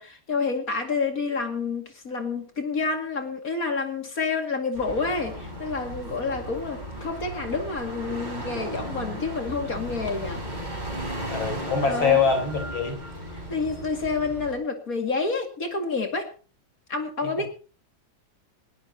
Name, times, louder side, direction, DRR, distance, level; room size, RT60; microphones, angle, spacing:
voice 1, 0.0-10.4 11.1-11.3 11.8-12.2 13.3-16.3 16.9-17.5, left 4 dB, 45° left, 5 dB, 2.7 m, -29 dB
sound 1, 4.7-14.5, right 1 dB, 20° right, 5.5 m, -35 dB
voice 2, 11.3-13.0 17.2-17.5, left 5 dB, 85° left, 5 dB, 5.2 m, -24 dB
21.0 x 17.5 x 2.9 m, 0.35 s
omnidirectional pair, 2.1 m